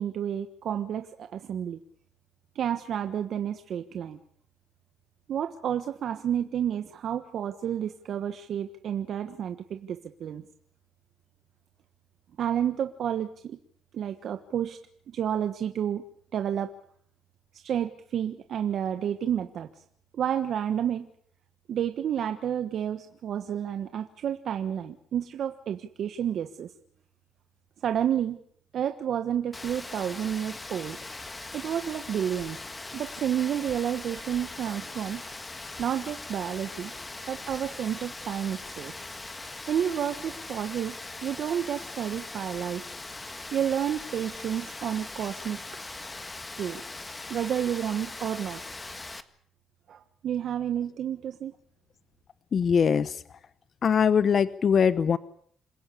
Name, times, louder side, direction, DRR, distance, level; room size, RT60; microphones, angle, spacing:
voice 1, 0.0-1.8 2.5-4.2 5.3-10.4 12.4-13.6 13.9-14.8 15.1-16.0 16.3-16.7 17.5-19.7 20.1-21.1 21.7-26.7 27.8-28.4 28.7-31.0 31.5-32.6 32.9-35.2 35.8-36.9 37.3-38.9 39.7-41.0 41.2-42.8 43.5-45.6 46.6-46.8 47.3-48.6 49.9-51.5, right 9 dB, 65° right, 8 dB, 1.3 m, -30 dB
Rain, 29.5-49.2, left 2 dB, 20° left, 1.7 m, -40 dB
voice 2, 52.5-53.2 53.8-55.2, left 7 dB, 50° left, 15 dB, 0.9 m, -22 dB
27.0 x 16.5 x 8.5 m, 0.64 s
cardioid pair, 100°, 0 cm